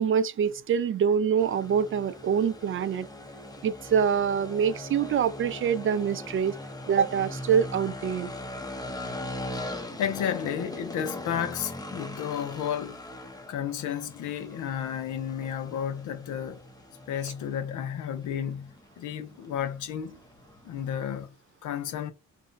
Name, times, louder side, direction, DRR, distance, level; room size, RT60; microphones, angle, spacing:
voice 1, 0.0-3.1 3.6-6.5 6.9-8.3, right 7 dB, 45° right, 0.4 m, -25 dB
sound 1, 1.4-21.3, left 1 dB, 15° left, 0.7 m, -41 dB
voice 2, 10.0-13.0 13.5-16.6 17.1-20.2 20.6-21.3 21.6-22.1, left 9 dB, 80° left, 0.7 m, -32 dB
2.6 x 2.1 x 3.8 m
cardioid pair, 90°, 30 cm